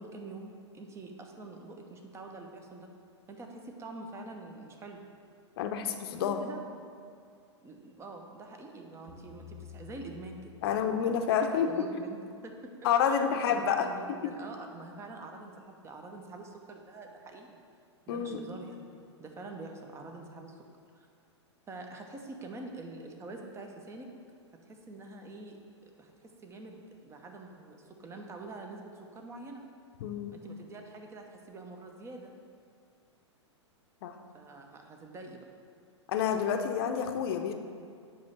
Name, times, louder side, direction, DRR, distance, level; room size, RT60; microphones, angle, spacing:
voice 1, 0.0-2.9 3.3-5.0 6.2-6.8 7.6-10.4 10.7-12.7 13.0-17.6 18.1-18.8 19.2-20.7 20.9-21.1 21.7-24.1 24.7-29.6 30.3-32.3 34.3-35.5, right 2 dB, 20° right, 3 dB, 0.9 m, -46 dB
voice 2, 5.6-6.4 10.6-11.7 12.8-14.3 18.1-18.4 30.0-30.3 34.0-34.1 36.1-37.5, left 7 dB, 55° left, 6 dB, 0.7 m, -29 dB
sound 1, 9.1-11.5, left 8 dB, 35° right, 1.7 m, -51 dB
9.5 x 3.2 x 6.4 m, 2.3 s
hypercardioid pair, 110°, 15 cm